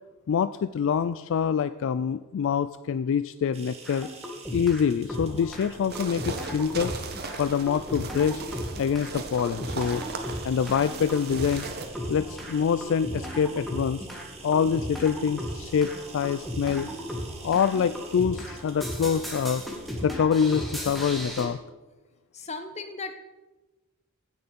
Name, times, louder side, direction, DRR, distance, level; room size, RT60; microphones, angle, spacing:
voice 1, 0.3-4.1 4.5-6.9 7.4-8.4 8.8-10.0 10.4-11.7 12.1-14.1 14.4-16.9 17.4-19.6 20.0-21.6, left 7 dB, 60° left, 14 dB, 0.3 m, -25 dB
sound 1, 3.5-20.0, right 5 dB, 30° right, 2.2 m, -49 dB
sound 2, 3.8-4.8 5.1-21.5, equal, ahead, 1.9 m, -36 dB
sound 3, 5.9-11.9, right 4 dB, 50° right, 1.3 m, -38 dB
voice 2, 22.3-23.1, left 3 dB, 30° left, 8 dB, 1.1 m, -36 dB
16.5 x 6.7 x 5.3 m, 1.1 s
head